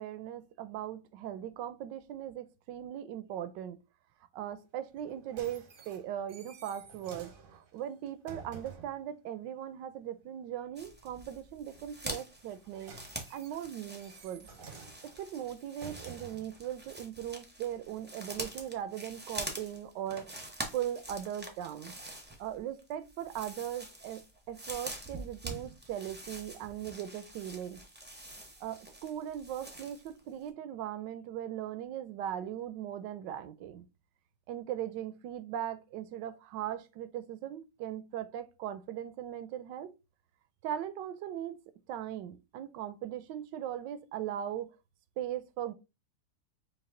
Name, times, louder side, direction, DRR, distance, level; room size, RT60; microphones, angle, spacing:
voice 1, 0.0-3.8 4.3-12.9 13.3-14.5 15.0-21.9 22.4-27.8 28.6-33.8 34.5-39.9 40.6-41.6 41.9-44.7 45.2-45.7, right 10 dB, 80° right, 1.2 m, -39 dB
sound 1, 5.0-9.0 12.4-16.6 17.3-17.4, right 5 dB, 45° right, 0.7 m, -51 dB
sound 2, 10.7-30.2 30.5-30.6, right 1 dB, 15° right, 0.4 m, -45 dB
5.3 x 2.3 x 3.6 m
omnidirectional pair, 1.9 m